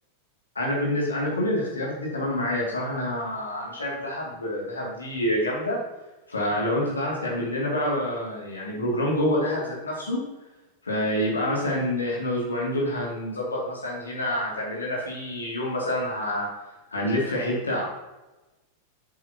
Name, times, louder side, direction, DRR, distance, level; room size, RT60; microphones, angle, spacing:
voice 1, 0.5-5.8 6.3-10.2 10.8-16.5 16.9-17.8, left 1 dB, 75° left, -4 dB, 2.4 m, -27 dB
10.0 x 8.1 x 2.9 m, 1.1 s
figure-of-eight pair, 90°, 0 cm